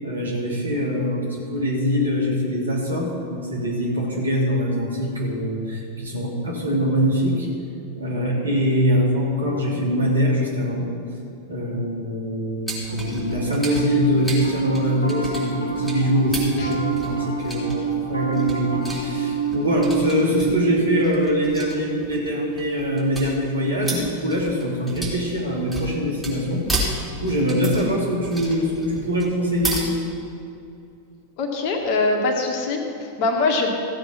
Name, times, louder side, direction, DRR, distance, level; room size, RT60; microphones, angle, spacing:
voice 1, 0.0-7.5 8.0-10.9 11.5-16.8 17.0-29.8, equal, 75° right, -4 dB, 3.1 m, -23 dB
sound 1, 12.7-29.8, right 1 dB, 5° right, 3.6 m, -33 dB
Piano, 12.9-24.4, right 7 dB, 75° left, 1.4 m, -29 dB
voice 2, 31.4-33.7, left 3 dB, 45° left, 2 dB, 1.8 m, -23 dB
15.0 x 7.8 x 5.8 m, 2.6 s
figure-of-eight pair, 90°, 0 cm